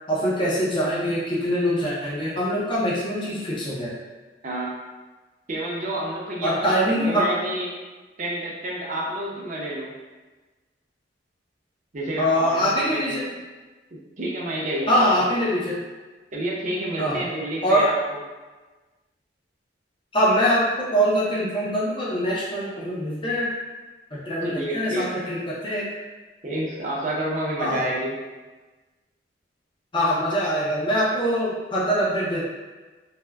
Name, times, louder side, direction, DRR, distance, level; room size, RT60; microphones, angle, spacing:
voice 1, 0.1-3.9 6.4-7.3 12.2-13.3 14.9-15.8 17.0-17.2 17.6-17.9 20.1-23.5 24.1-25.9 27.6-27.8 29.9-32.4, equal, 30° left, -7 dB, 0.5 m, -23 dB
voice 2, 4.4-4.7 5.5-6.6 6.9-7.7 8.2-9.9 11.9-13.2 13.9-15.2 16.3-18.2 24.4-25.1 26.4-28.1, right 1 dB, 45° right, -4 dB, 0.6 m, -29 dB
3.4 x 2.1 x 2.2 m, 1.3 s
head